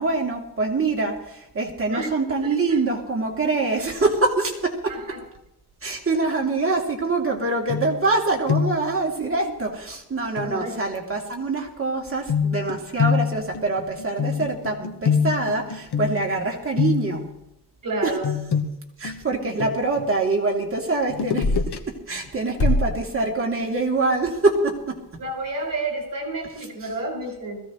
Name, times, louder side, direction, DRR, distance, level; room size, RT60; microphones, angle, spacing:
voice 1, 0.0-4.9 5.8-17.3 18.0-18.2 19.0-21.6 21.9-25.0 26.4-26.6 26.8-26.9, right 3 dB, 35° right, -1 dB, 3.0 m, -24 dB
voice 2, 4.9-5.2 6.2-6.3 10.4-10.7 17.8-18.3 25.2-27.6, right 2 dB, 55° right, -1 dB, 5.9 m, -30 dB
sound 1, 7.7-8.2 8.5-8.9 10.4-10.5 12.3-16.4 16.8-17.3 18.2-20.1 21.1-21.8 22.2-22.3, left 7 dB, 75° left, 1.4 m, -25 dB
sound 2, 21.4-21.7 22.6-23.0, left 1 dB, 60° left, 5.9 m, -21 dB
21.0 x 16.0 x 3.2 m, 0.83 s
wide cardioid pair, 140°, 40 cm